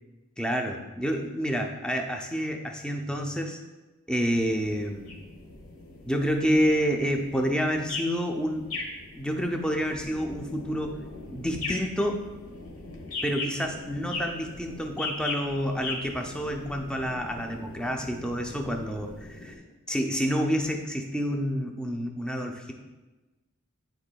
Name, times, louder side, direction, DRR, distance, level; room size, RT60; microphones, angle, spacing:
voice 1, 0.4-3.6 4.1-5.1 6.1-8.7 9.1-11.0 11.3-12.3 13.2-19.5 19.9-22.7, equal, 5° left, 3 dB, 0.5 m, -28 dB
sound 1, 4.3-19.6, left 3 dB, 85° left, 1.3 m, -40 dB
11.5 x 4.2 x 2.3 m, 1.2 s
head